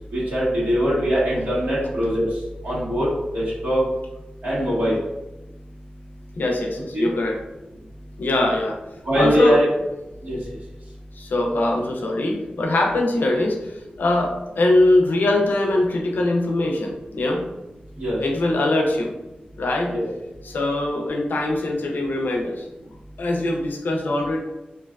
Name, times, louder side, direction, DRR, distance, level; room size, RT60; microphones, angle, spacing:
voice 1, 0.1-2.3 2.6-3.1 3.3-3.8 4.4-5.0 6.9-7.1 9.1-9.7 10.2-10.4 18.0-18.2 19.9-20.1, equal, 75° right, -8 dB, 1.3 m, -21 dB
voice 2, 6.4-7.4 8.2-8.8 9.1-9.6 11.1-17.4 18.2-19.1 19.6-19.9 20.4-22.7 23.2-24.4, left 2 dB, 85° left, 1 dB, 0.4 m, -22 dB
2.5 x 2.3 x 2.2 m, 0.98 s
wide cardioid pair, 75°, 3 cm